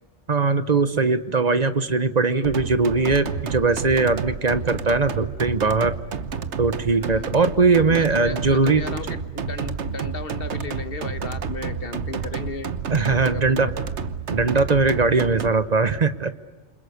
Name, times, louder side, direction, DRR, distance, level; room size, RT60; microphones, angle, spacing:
voice 1, 0.3-5.9 6.6-8.9 12.9-13.7 14.3-16.3, right 4 dB, 35° right, 12 dB, 1.2 m, -20 dB
sound 1, 2.4-15.5, right 6 dB, 80° right, 1.4 m, -30 dB
voice 2, 7.0-7.4 7.9-13.7, left 3 dB, 55° left, 12 dB, 1.5 m, -35 dB
28.5 x 26.0 x 6.6 m, 1.2 s
omnidirectional pair, 1.2 m